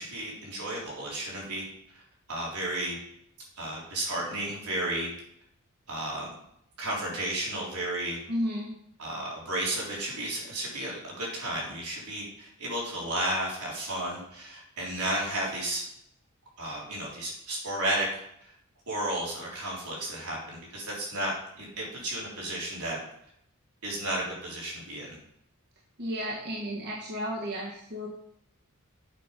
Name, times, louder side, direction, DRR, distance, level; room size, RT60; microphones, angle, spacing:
voice 1, 0.0-1.7 1.9-2.0 2.3-3.0 3.6-5.1 5.9-6.3 6.8-8.2 9.0-15.8 16.6-18.1 18.9-21.3 21.6-23.0 23.8-25.2, right 1 dB, 85° right, -4 dB, 3.6 m, -33 dB
voice 2, 8.3-8.7 26.0-28.1, equal, 50° right, -3 dB, 1.5 m, -33 dB
7.9 x 6.0 x 5.1 m, 0.74 s
head